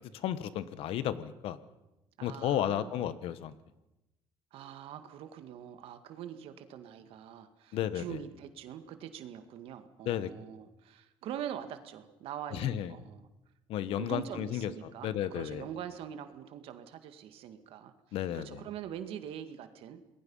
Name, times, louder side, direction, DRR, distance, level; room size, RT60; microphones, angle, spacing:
voice 1, 0.2-1.6 2.2-3.5 7.7-8.2 10.0-10.3 12.5-12.9 13.7-14.7 15.0-15.6 18.1-18.6, left 11 dB, 80° left, 14 dB, 1.4 m, -33 dB
voice 2, 2.2-3.1 4.5-13.3 13.9-20.0, right 9 dB, 75° right, 9 dB, 2.0 m, -43 dB
27.5 x 21.0 x 5.6 m, 0.95 s
cardioid pair, 110°, 10 cm